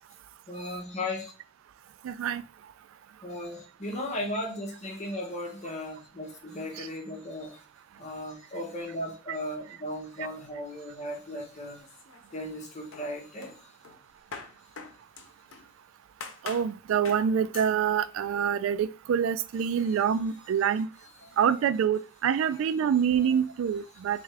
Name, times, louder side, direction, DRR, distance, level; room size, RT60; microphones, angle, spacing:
voice 1, 0.5-1.3 3.2-7.6 8.0-11.8 12.3-13.5 19.8-19.9 21.2-21.4 23.2-23.4, left 1 dB, 35° left, 1.1 m, -36 dB
voice 2, 2.0-2.4 16.4-20.9 21.4-24.2, right 8 dB, 80° right, 0.3 m, -26 dB
sound 1, 11.8-12.6 12.9-15.7 16.2-16.7 17.0-17.3 17.5-17.8, left 5 dB, 85° left, 0.7 m, -44 dB
3.5 x 3.4 x 3.3 m
head